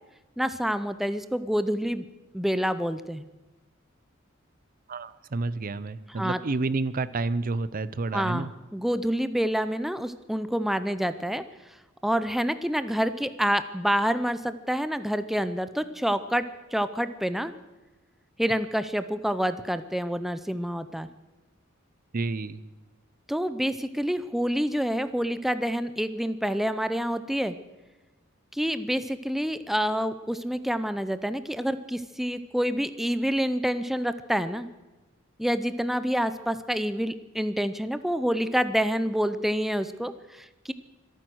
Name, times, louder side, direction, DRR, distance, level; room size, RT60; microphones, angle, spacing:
voice 1, 0.4-2.1 2.3-3.2 6.2-6.4 8.1-11.4 12.0-16.4 16.7-17.5 18.4-21.1 23.3-27.6 28.5-34.7 35.4-40.7, equal, ahead, 12 dB, 0.5 m, -27 dB
voice 2, 4.9-8.5 22.1-22.6, right 3 dB, 45° right, 17 dB, 0.6 m, -29 dB
24.5 x 9.2 x 6.2 m, 1.1 s
head